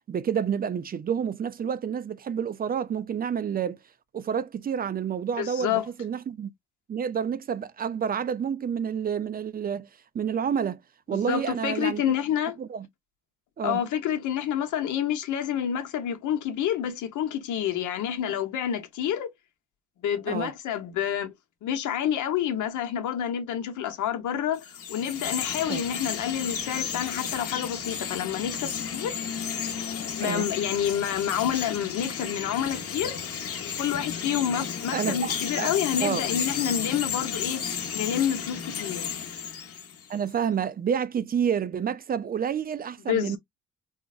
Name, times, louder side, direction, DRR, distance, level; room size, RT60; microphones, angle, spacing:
voice 1, 0.1-3.8 4.1-6.5 6.9-9.9 10.1-10.8 11.1-12.0 12.6-12.9 13.6-13.8 20.3-20.5 25.7-25.8 30.2-30.5 34.9-35.3 35.6-35.7 36.0-36.2 40.1-43.4, right 7 dB, 30° right, 0.4 m, -29 dB
voice 2, 5.4-5.9 11.1-12.6 13.6-19.3 20.0-21.3 21.6-29.1 30.2-33.2 33.6-39.0 43.1-43.4, left 9 dB, 80° left, 0.9 m, -28 dB
Chirp tweet, 24.6-40.2, left 7 dB, 50° left, 0.9 m, -33 dB
3.8 x 2.1 x 2.3 m
cardioid pair, 90°, 30 cm